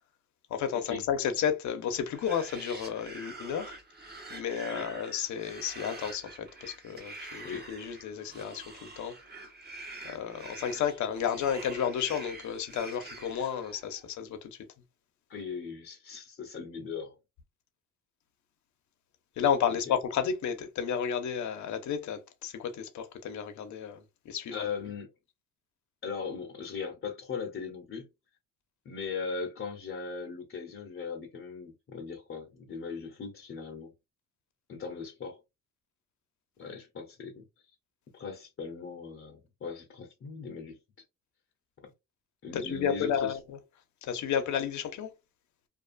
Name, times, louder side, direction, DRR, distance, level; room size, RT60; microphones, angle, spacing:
voice 1, 0.5-3.7 4.3-9.1 10.0-14.6 19.4-24.7 42.5-43.6 44.0-45.1, left 8 dB, 70° left, 0.8 m, -32 dB
sound 1, 2.0-14.0, right 2 dB, 35° right, 0.9 m, -46 dB
voice 2, 15.3-17.2 19.7-19.8 24.5-25.1 26.0-28.1 28.8-33.9 34.7-35.4 36.6-37.4 38.1-40.8 42.4-43.4, left 5 dB, 45° left, 0.8 m, -39 dB
2.5 x 2.4 x 2.4 m
cardioid pair, 90°, 30 cm